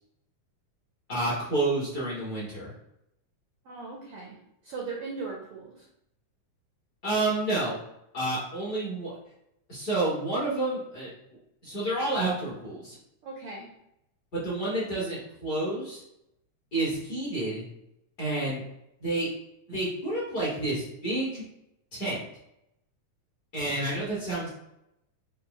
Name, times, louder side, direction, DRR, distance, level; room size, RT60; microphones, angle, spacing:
voice 1, 1.1-2.7 7.0-7.8 8.1-9.1 9.7-11.1 11.6-13.0 14.3-16.0 16.7-17.6 18.2-18.6 19.0-19.3 19.7-21.4 21.9-22.2 23.5-24.5, right 2 dB, 40° left, -7 dB, 1.6 m, -29 dB
voice 2, 3.6-4.4 4.6-5.9 13.2-13.7, right 4 dB, 80° right, -1 dB, 1.3 m, -38 dB
5.1 x 2.6 x 3.9 m, 0.81 s
omnidirectional pair, 3.5 m